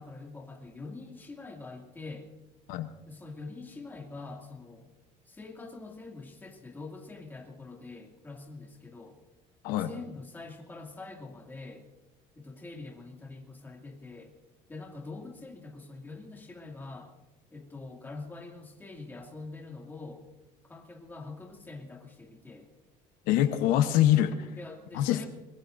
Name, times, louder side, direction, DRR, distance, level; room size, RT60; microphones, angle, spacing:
voice 1, 0.0-2.3 3.1-4.9 5.3-9.2 9.8-11.9 12.4-14.3 14.7-17.1 17.5-20.2 20.6-22.7 24.6-25.3, left 3 dB, 15° left, 1 dB, 2.4 m, -44 dB
voice 2, 23.3-24.6 24.9-25.3, left 12 dB, 75° left, 9 dB, 1.0 m, -24 dB
24.5 x 20.5 x 2.6 m, 0.99 s
cardioid pair, 155°, 14 cm